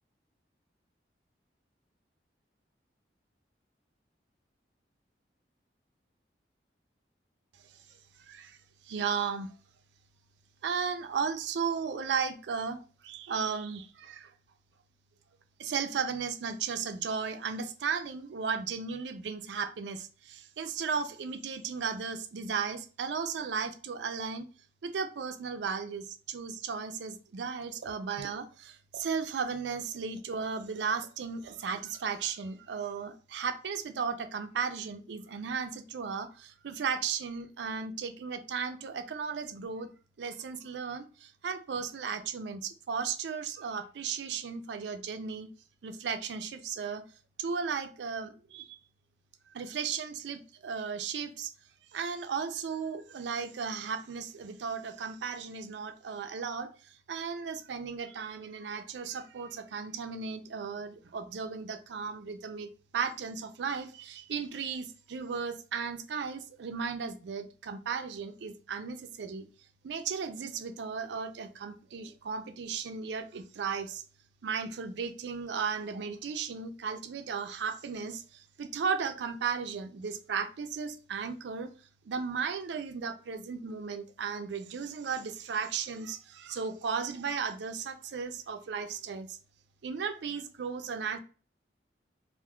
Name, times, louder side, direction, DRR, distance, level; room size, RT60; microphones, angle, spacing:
voice 1, 8.2-8.6 8.8-9.5 10.6-14.3 15.6-24.5 24.8-39.9 40.2-45.5 45.8-47.0 47.4-48.8 49.5-51.5 51.9-69.5 69.8-74.0 74.4-81.7 82.1-89.4 89.8-91.2, right 6 dB, 80° right, 8 dB, 0.4 m, -35 dB
2.5 x 2.2 x 3.5 m, 0.37 s
head